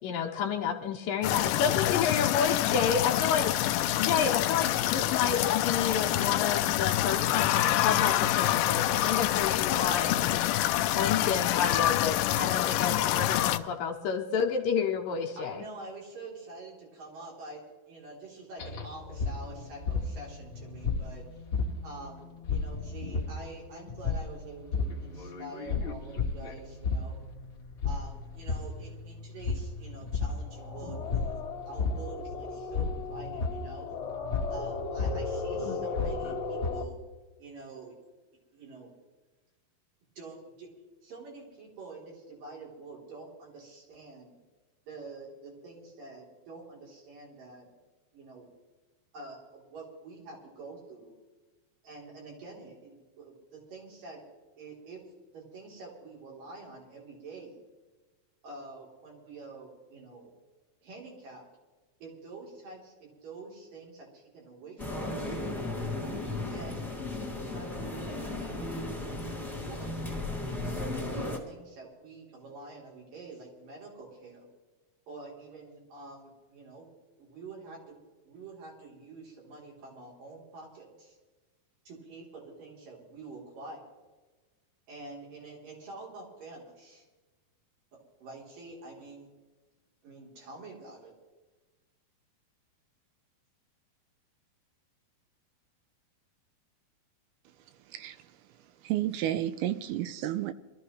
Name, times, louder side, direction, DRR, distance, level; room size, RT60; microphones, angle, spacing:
voice 1, 0.0-10.3 10.9-15.5, left 7 dB, 75° left, 2.6 m, -30 dB
sound 1, 1.2-13.6, left 13 dB, 90° left, 1.9 m, -26 dB
voice 2, 15.3-21.4 21.8-27.2 27.8-33.9 34.5-37.0 37.4-38.0 38.5-38.9 40.2-40.7 41.0-44.3 44.9-47.7 48.1-48.5 49.1-51.1 51.8-54.2 54.6-55.0 55.3-57.6 58.4-60.3 60.8-61.4 62.0-65.4 66.4-66.9 67.2-70.0 70.6-74.5 75.1-76.9 77.2-77.8 78.2-81.2 81.8-83.9 84.9-87.0 88.2-89.3 90.0-91.1, right 3 dB, 60° right, 5.1 m, -47 dB
sound 2, 18.6-36.8, left 4 dB, 50° left, 1.6 m, -33 dB
sound 3, 64.8-71.4, left 2 dB, ahead, 2.0 m, -35 dB
voice 3, 97.9-98.4 98.8-100.5, right 12 dB, 85° right, 2.5 m, -31 dB
24.5 x 13.5 x 3.2 m
omnidirectional pair, 4.5 m